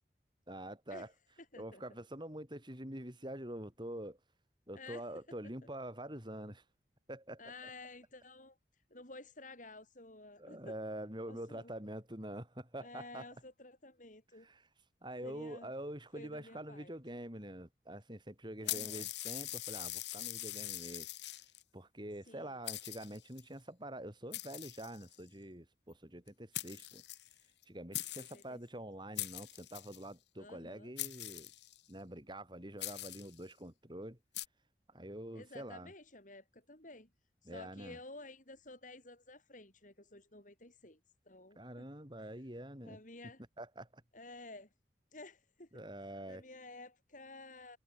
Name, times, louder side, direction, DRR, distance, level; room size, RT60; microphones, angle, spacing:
voice 1, 0.5-1.1 1.6-4.2 4.7-6.6 7.1-7.4 10.4-13.3 14.4-14.6 15.0-21.1 21.7-27.0 27.7-31.5 31.9-34.2 34.9-35.9 37.5-38.0 41.6-43.0 43.6-44.0 45.7-46.4, right 1 dB, 25° right, 6.8 m, -46 dB
voice 2, 1.4-1.8 4.7-5.1 7.4-8.6 8.9-10.8 11.3-11.7 12.8-14.5 15.2-15.7 16.1-17.0 18.6-19.1 22.3-22.6 28.1-28.8 30.4-30.9 35.3-37.1 37.4-41.0 41.3-41.9 42.8-43.4 44.1-44.7 45.1-45.8 46.3-47.8, left 2 dB, 45° left, 7.4 m, -52 dB
sound 1, 18.7-21.6 22.3-22.4 22.7-23.4 24.3-25.3 26.3-26.4 26.5-27.6 27.9-28.4 29.2-30.0 31.0-31.9 32.8-33.4 34.3-34.5, left 15 dB, 80° left, 2.1 m, -42 dB
head